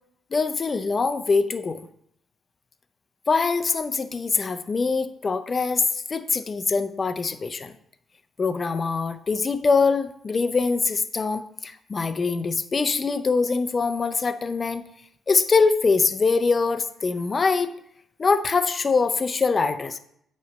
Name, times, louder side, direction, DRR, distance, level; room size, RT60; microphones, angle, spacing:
voice 1, 0.3-1.8 3.3-7.7 8.4-14.8 15.3-17.7 18.2-20.0, left 4 dB, 35° left, 10 dB, 0.5 m, -23 dB
8.6 x 3.2 x 5.1 m, 0.71 s
cardioid pair, 90°, 0 cm